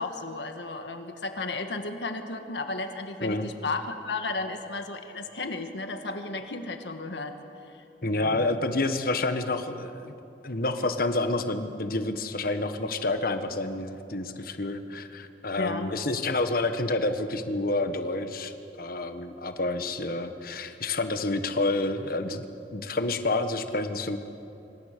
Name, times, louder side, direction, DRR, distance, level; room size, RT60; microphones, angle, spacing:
voice 1, 0.0-7.4 8.1-8.5 15.6-15.9, left 3 dB, 80° left, 6 dB, 1.6 m, -34 dB
voice 2, 8.0-10.2 10.4-22.5 22.7-24.2, left 2 dB, 55° left, 8 dB, 1.5 m, -29 dB
26.5 x 25.0 x 6.8 m, 2.9 s
head